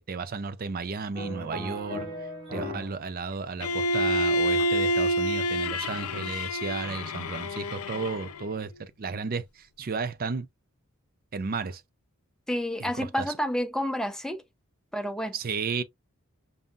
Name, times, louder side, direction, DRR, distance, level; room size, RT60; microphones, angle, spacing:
voice 1, 0.0-2.1 2.5-10.5 11.3-11.8 12.8-13.3 15.3-15.8, right 4 dB, 45° right, 0.5 m, -33 dB
sound 1, 1.1-3.0 3.3-4.9 5.4-5.6, equal, 25° right, 2.2 m, -37 dB
Bowed string instrument, 3.6-8.5, equal, 85° left, 0.5 m, -28 dB
voice 2, 12.5-14.4 14.9-15.3, equal, 5° left, 0.6 m, -29 dB
5.4 x 2.7 x 2.4 m
head